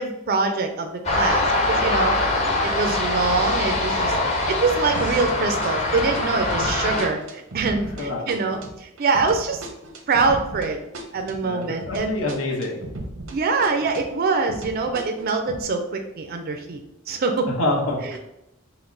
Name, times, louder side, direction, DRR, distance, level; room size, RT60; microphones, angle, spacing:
voice 1, 0.0-2.2 2.6-4.2 4.5-9.6 10.1-10.8 11.1-12.2 13.3-16.8 17.1-17.5, right 4 dB, 45° right, 5 dB, 0.4 m, -24 dB
sound 1, 1.0-7.1, left 2 dB, 35° left, 0.8 m, -23 dB
sound 2, 4.9-5.4 5.6-13.4 13.6-15.6, right 1 dB, 90° right, 0.8 m, -36 dB
voice 2, 8.0-8.3 11.4-12.8 17.5-18.2, left 2 dB, 80° left, -1 dB, 1.1 m, -27 dB
5.8 x 2.1 x 3.8 m, 0.87 s
head